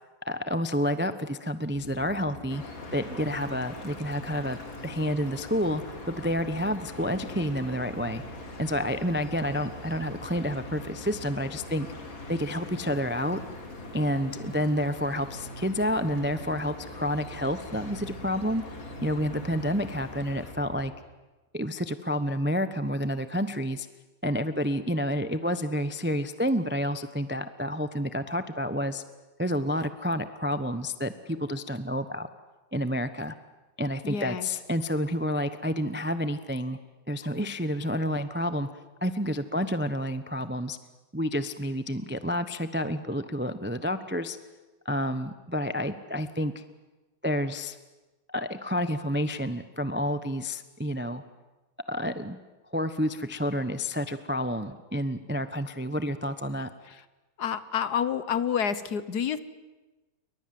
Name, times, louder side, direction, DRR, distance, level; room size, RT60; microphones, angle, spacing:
voice 1, 0.2-2.6 2.9-5.8 6.1-8.2 8.6-11.9 12.3-13.4 13.9-18.6 19.0-20.9 21.5-23.9 24.2-29.0 29.4-32.3 32.7-33.4 33.8-36.8 37.1-38.7 39.0-40.8 41.1-44.4 44.8-46.6 47.2-47.8 48.3-51.2 51.9-52.4 52.7-56.7, equal, 10° right, 11 dB, 0.5 m, -29 dB
sound 1, 1.7-20.9, equal, 35° left, 8.3 m, -44 dB
sound 2, 2.5-20.5, left 2 dB, 80° left, 4.1 m, -45 dB
voice 2, 34.0-34.5 56.9-57.0 57.4-59.4, left 8 dB, 60° left, 14 dB, 1.5 m, -28 dB
29.0 x 23.5 x 7.7 m, 1.2 s
omnidirectional pair, 2.1 m